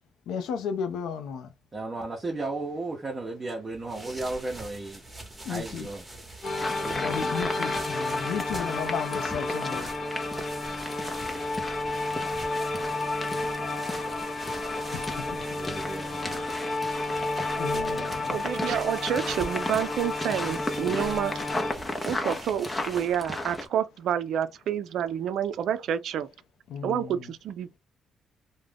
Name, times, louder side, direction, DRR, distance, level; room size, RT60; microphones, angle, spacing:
voice 1, 0.3-1.5 5.4-5.9 6.9-9.9 14.9-15.1 17.2-18.4 26.7-27.2, left 7 dB, 80° left, 0.5 m, -34 dB
voice 2, 1.7-5.0 5.5-6.0 6.8-7.2 8.6-8.8 13.6-14.3 15.5-16.7 17.9-18.0, right 2 dB, 30° right, 0.6 m, -36 dB
sound 1, 3.7-23.3, right 1 dB, 10° right, 1.0 m, -44 dB
sound 2, 6.4-21.7, left 2 dB, 50° left, 0.9 m, -31 dB
sound 3, 6.4-23.7, left 1 dB, 20° left, 0.7 m, -36 dB
voice 3, 18.3-21.4 22.1-26.3 26.8-27.8, right 9 dB, 75° right, 0.3 m, -29 dB
2.4 x 2.1 x 3.3 m
cardioid pair, 90°, 0 cm